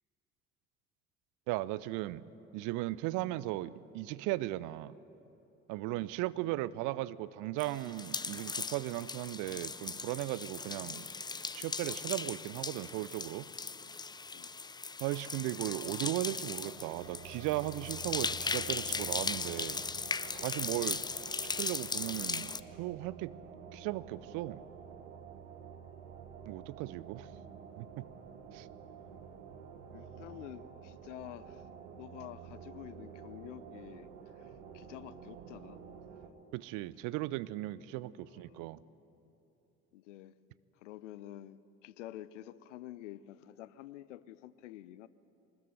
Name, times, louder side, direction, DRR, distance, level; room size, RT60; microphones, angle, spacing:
voice 1, 1.5-2.3 2.5-4.9 5.7-11.1 11.5-13.5 15.0-19.8 20.4-21.0 21.4-23.4 23.7-24.6 26.5-27.3 27.8-28.1 28.5-28.7 36.5-38.8, right 17 dB, 55° right, 18 dB, 0.6 m, -37 dB
sound 1, 7.6-22.6, left 4 dB, 10° left, 0.5 m, -38 dB
sound 2, 16.6-36.3, right 7 dB, 75° right, 1.4 m, -50 dB
voice 2, 29.9-31.6 31.9-35.8 38.2-38.7 39.9-40.4 40.8-45.1, left 14 dB, 70° left, 18 dB, 0.7 m, -49 dB
23.5 x 20.5 x 7.9 m, 3.0 s
figure-of-eight pair, 50°, 38 cm